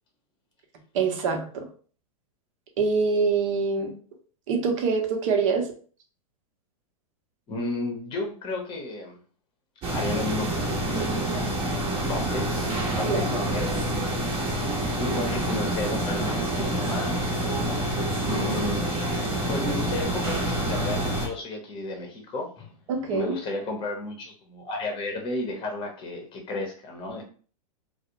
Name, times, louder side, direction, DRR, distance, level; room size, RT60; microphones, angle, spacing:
voice 1, 0.9-1.6 2.8-3.9 4.5-5.7 13.0-13.2 22.9-23.4, right 5 dB, 60° right, 3 dB, 0.7 m, -24 dB
voice 2, 7.5-9.2 9.9-11.5 12.1-12.5 13.0-13.7 14.8-17.2 17.8-19.0 19.5-22.8 23.1-27.2, left 2 dB, 25° left, 2 dB, 0.8 m, -33 dB
sound 1, 9.8-21.3, right 1 dB, 30° right, 0.8 m, -27 dB
2.4 x 2.0 x 2.9 m, 0.42 s
hypercardioid pair, 115°, 19 cm